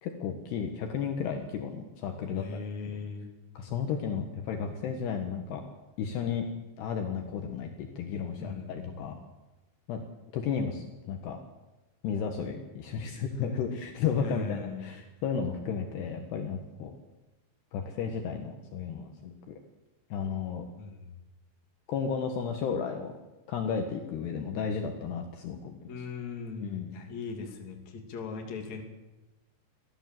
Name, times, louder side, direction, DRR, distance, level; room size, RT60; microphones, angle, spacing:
voice 1, 0.0-2.6 2.9-3.0 3.6-5.6 6.0-6.4 6.8-9.1 9.9-10.0 10.3-11.4 12.0-16.9 17.7-19.5 20.1-20.7 21.9-23.1 23.5-25.9 26.6-26.9, left 6 dB, 70° left, 4 dB, 3.4 m, -33 dB
voice 2, 2.3-3.3 8.4-9.2 14.2-14.9 20.8-21.2 25.9-28.8, left 5 dB, 45° left, 2 dB, 3.6 m, -39 dB
24.0 x 16.0 x 7.7 m, 1.1 s
omnidirectional pair, 5.3 m